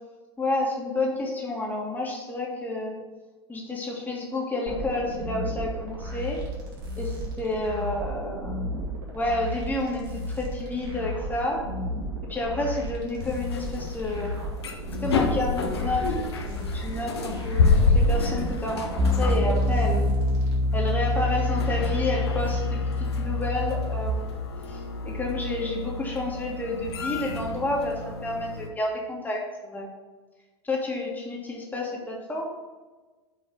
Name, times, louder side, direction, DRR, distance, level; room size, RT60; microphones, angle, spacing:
voice 1, 0.4-3.0 3.5-6.4 7.0-8.7 9.1-11.7 12.3-14.4 15.0-20.1 20.7-24.3 24.7-29.9 30.6-32.5, left 2 dB, 10° left, -1 dB, 1.8 m, -30 dB
sound 1, 4.7-20.5, equal, 50° right, 2.4 m, -34 dB
sound 2, 13.2-28.7, left 3 dB, 65° left, 0.9 m, -29 dB
Piano, 19.0-24.1, left 2 dB, 25° right, 0.7 m, -25 dB
5.8 x 5.3 x 6.3 m, 1.3 s
figure-of-eight pair, 85°, 14 cm